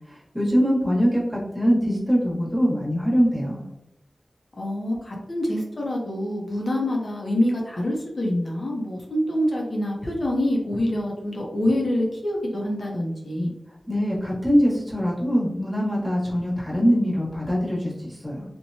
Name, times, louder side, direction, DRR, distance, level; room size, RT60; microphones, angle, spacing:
voice 1, 0.1-3.6 13.9-18.4, equal, 10° right, -6 dB, 1.1 m, -23 dB
voice 2, 4.6-13.5, left 1 dB, 60° left, -1 dB, 0.6 m, -26 dB
3.0 x 2.1 x 2.6 m, 0.87 s
wide cardioid pair, 75°, 0 cm